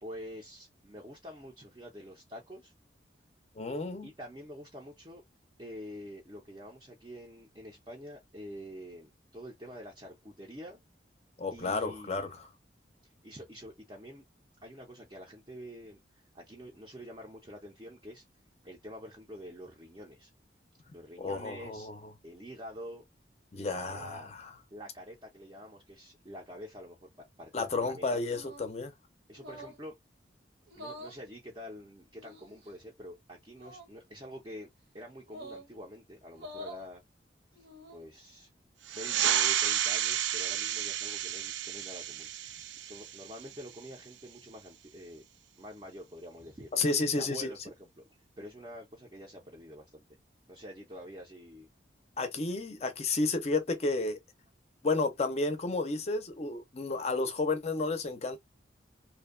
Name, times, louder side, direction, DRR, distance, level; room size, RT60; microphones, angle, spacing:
voice 1, 0.0-2.7 4.0-5.2 5.6-10.8 11.5-12.3 13.2-14.2 14.6-18.2 18.6-20.3 20.9-21.9 22.2-23.0 23.5-24.3 24.7-28.2 29.3-30.0 30.8-34.7 34.9-37.0 37.5-38.5 38.9-45.3 45.6-48.0 48.4-50.0 50.5-51.7, equal, 25° right, 0.5 m, -47 dB
voice 2, 3.6-4.1 11.4-12.5 21.2-22.0 23.5-24.5 27.5-28.9 46.7-47.5 52.2-54.2 54.8-58.4, left 3 dB, 35° left, 0.5 m, -31 dB
sound 1, 28.2-28.7 29.4-29.8 30.7-31.2 32.2-32.7 33.5-33.9 35.3-35.7 36.3-36.8 37.5-38.1, equal, 65° right, 0.8 m, -47 dB
sound 2, 38.8-44.0, right 10 dB, 85° right, 0.4 m, -31 dB
2.6 x 2.1 x 2.4 m
head